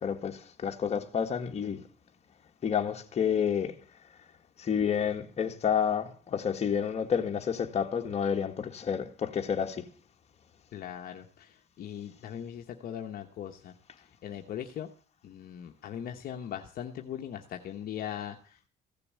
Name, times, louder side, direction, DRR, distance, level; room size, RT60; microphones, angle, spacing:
voice 1, 0.0-1.8 2.6-3.7 4.6-9.8, left 7 dB, 40° left, 1.8 m, -29 dB
voice 2, 10.7-13.7 14.2-14.9 15.2-18.6, left 9 dB, 60° left, 1.1 m, -40 dB
15.5 x 6.9 x 8.2 m
cardioid pair, 110°, 17 cm